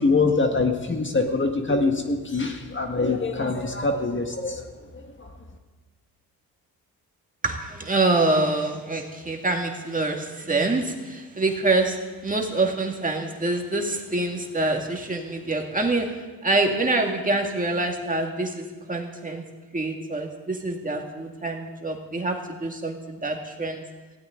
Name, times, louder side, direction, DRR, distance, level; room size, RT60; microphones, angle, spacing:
voice 1, 0.0-4.6 5.2-5.3, left 3 dB, 30° left, 4 dB, 1.6 m, -24 dB
voice 2, 7.4-19.4 19.7-23.8, right 2 dB, 20° right, 2 dB, 2.1 m, -26 dB
19.0 x 16.5 x 3.8 m, 1.3 s
cardioid pair, 95°, 37 cm